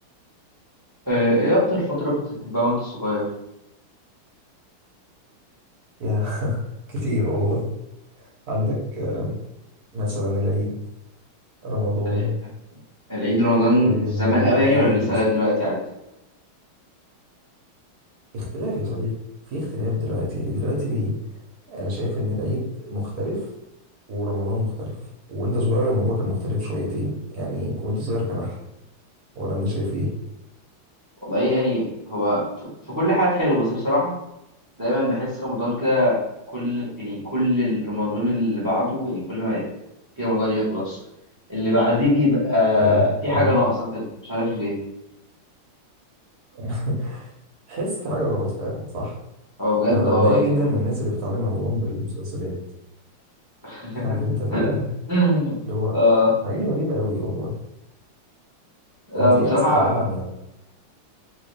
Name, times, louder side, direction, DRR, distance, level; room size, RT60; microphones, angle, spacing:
voice 1, 1.1-3.3 12.0-12.2 13.1-15.8 31.2-34.1 34.8-36.2 36.5-39.7 40.2-41.0 41.5-44.8 49.6-50.7 53.6-54.2 54.5-54.7 55.1-55.6 55.9-56.4 59.1-60.0, left 1 dB, 15° right, -7 dB, 0.9 m, -21 dB
voice 2, 6.0-6.6 6.9-7.7 8.2-9.4 9.9-10.7 11.6-12.3 13.8-15.1 18.3-19.1 19.5-21.1 21.7-23.5 24.1-25.0 25.3-28.6 29.3-30.1 42.8-43.0 43.3-43.5 46.5-47.3 47.7-49.1 49.9-52.5 53.9-54.9 55.6-55.9 56.4-57.5 59.1-60.2, left 1 dB, 55° right, -3 dB, 1.3 m, -26 dB
3.3 x 3.1 x 3.3 m, 0.88 s
omnidirectional pair, 2.4 m